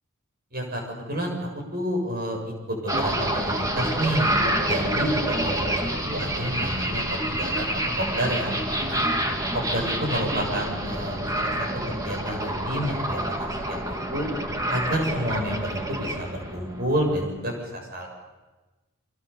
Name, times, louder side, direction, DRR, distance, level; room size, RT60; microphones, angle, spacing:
voice 1, 0.5-1.3 1.7-2.4 2.7-4.3 4.6-9.0 9.5-14.3 14.7-18.1, equal, 45° right, 1 dB, 7.2 m, -29 dB
sound 1, 2.9-17.3, right 1 dB, 15° right, 2.2 m, -28 dB
29.0 x 24.5 x 7.1 m, 1.2 s
head